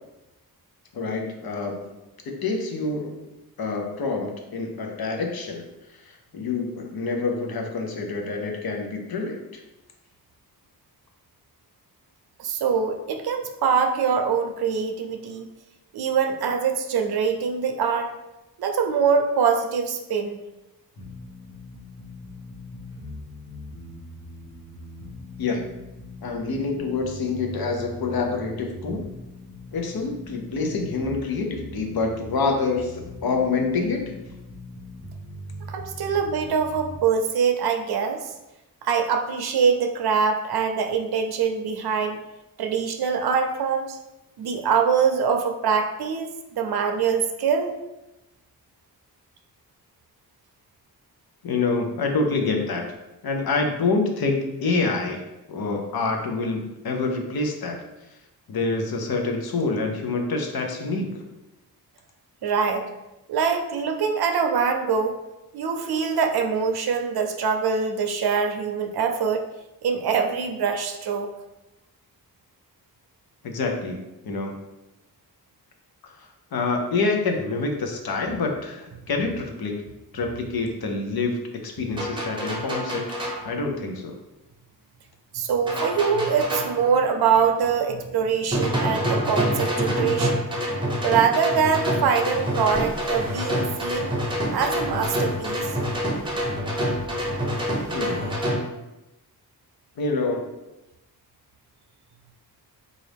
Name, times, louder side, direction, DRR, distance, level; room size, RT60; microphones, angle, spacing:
voice 1, 0.9-1.9 2.3-3.3 3.6-9.6 25.4-25.6 26.2-29.0 29.7-34.2 51.4-52.8 53.2-55.2 55.5-57.8 58.5-61.2 73.4-74.0 74.2-74.6 76.0-79.8 80.1-83.0 83.4-84.1 97.9-98.4 100.0-100.5, left 3 dB, 70° left, 2 dB, 0.7 m, -27 dB
voice 2, 12.4-15.5 15.9-18.1 18.6-20.4 35.7-38.3 38.8-42.2 42.6-44.0 44.4-46.3 46.6-47.8 62.4-62.9 63.3-65.1 65.5-69.4 69.8-71.3 85.3-90.5 91.0-94.1 94.5-95.7, right 6 dB, 75° right, 4 dB, 0.5 m, -23 dB
sound 1, 21.0-37.0, left 1 dB, 45° left, 1.2 m, -41 dB
sound 2, 82.0-83.5 85.7-86.8 88.5-98.6, equal, 15° right, 0.7 m, -26 dB
sound 3, 92.2-98.3, equal, 15° left, 1.0 m, -41 dB
3.9 x 2.4 x 3.3 m, 0.97 s
wide cardioid pair, 145°, 38 cm